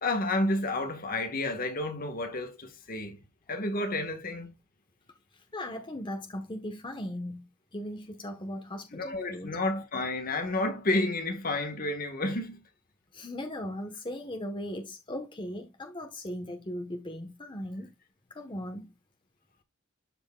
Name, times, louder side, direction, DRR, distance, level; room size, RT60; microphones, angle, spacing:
voice 1, 0.0-3.2 3.5-4.5 8.9-12.6, left 2 dB, 40° left, 1.4 m, -30 dB
voice 2, 5.3-9.5 13.1-17.9 18.3-18.9, left 1 dB, 20° left, 1.1 m, -38 dB
13.0 x 4.4 x 2.3 m
head